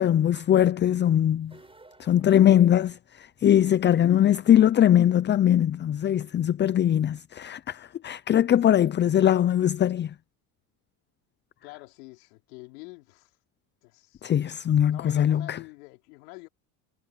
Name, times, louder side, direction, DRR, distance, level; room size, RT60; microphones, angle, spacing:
voice 1, 0.0-1.5 2.0-3.0 3.4-10.1 14.2-15.6, left 10 dB, 25° left, 0.5 m, -21 dB
sound 1, 1.4-3.4, right 3 dB, 10° right, 6.8 m, -56 dB
voice 2, 11.6-13.4 13.8-14.2 14.9-16.5, left 25 dB, 85° left, 4.7 m, -46 dB
supercardioid pair, 105°, 45 cm